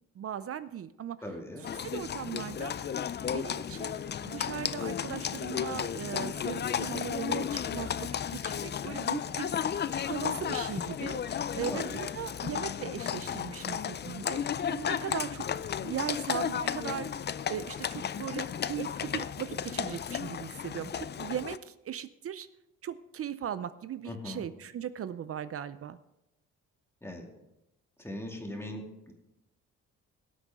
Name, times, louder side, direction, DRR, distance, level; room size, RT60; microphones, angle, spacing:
voice 1, 0.2-1.2 1.7-4.0 4.2-15.5 15.8-22.5 22.8-26.0, right 9 dB, 50° right, 14 dB, 0.6 m, -39 dB
voice 2, 1.2-1.7 11.5-12.0 24.1-24.5 27.0-27.3 28.0-29.1, left 1 dB, 10° left, 1 dB, 2.4 m, -40 dB
Livestock farm animals working animals, 1.6-21.6, left 8 dB, 35° left, 0.5 m, -34 dB
17.5 x 8.2 x 3.7 m, 0.90 s
cardioid pair, 90°, 30 cm